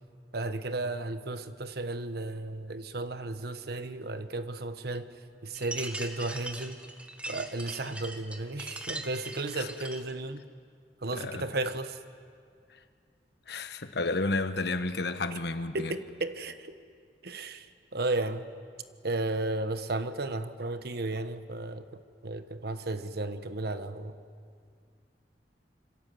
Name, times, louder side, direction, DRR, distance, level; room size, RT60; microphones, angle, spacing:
voice 1, 0.3-5.1 5.4-6.8 7.3-10.4 11.0-12.0 15.7-16.7 17.2-18.4 19.0-24.1, right 2 dB, 65° right, 1.2 m, -34 dB
sound 1, 5.5-10.1, right 1 dB, 5° right, 1.6 m, -41 dB
voice 2, 11.1-11.5 12.7-12.8 13.5-15.9, left 2 dB, 65° left, 1.4 m, -32 dB
27.0 x 25.5 x 7.8 m
head